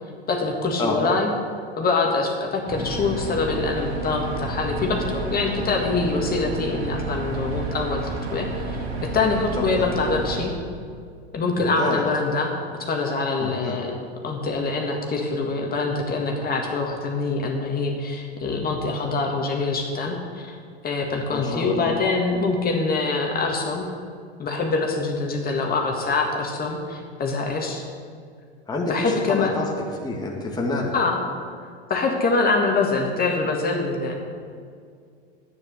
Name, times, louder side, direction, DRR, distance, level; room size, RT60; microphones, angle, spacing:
voice 1, 0.3-1.3 1.8-10.5 11.3-12.5 12.8-13.9 14.2-20.6 20.8-23.9 24.4-27.8 28.9-29.5 30.9-31.2 31.9-34.1, left 3 dB, 30° left, 1 dB, 1.9 m, -24 dB
voice 2, 0.8-1.1 9.6-9.9 11.6-12.0 13.4-13.8 21.3-21.9 28.7-30.9, left 2 dB, 10° left, -2 dB, 1.8 m, -28 dB
sound 1, 2.7-10.5, right 3 dB, 85° right, 2.1 m, -30 dB
11.0 x 9.7 x 6.6 m, 2.2 s
hypercardioid pair, 100°, 32 cm